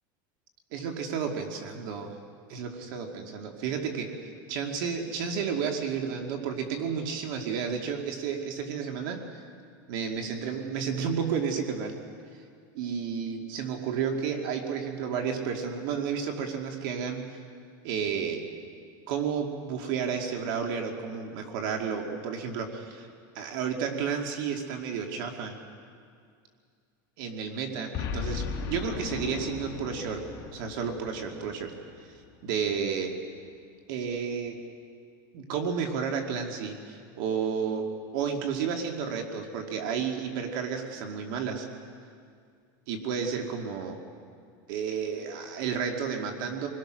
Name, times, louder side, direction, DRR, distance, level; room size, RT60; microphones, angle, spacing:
voice 1, 0.7-2.2 2.5-4.1 4.5-9.4 9.9-11.9 12.7-17.2 17.8-18.4 19.1-23.1 23.3-25.6 27.2-30.2 30.5-31.7 32.4-33.2 33.9-34.6 35.3-41.7 42.9-44.0 44.7-46.7, right 6 dB, 65° right, 3 dB, 2.4 m, -31 dB
Boom, 27.9-32.3, left 6 dB, 35° left, 2.3 m, -37 dB
28.0 x 21.5 x 6.4 m, 2.2 s
supercardioid pair, 150°, 12 cm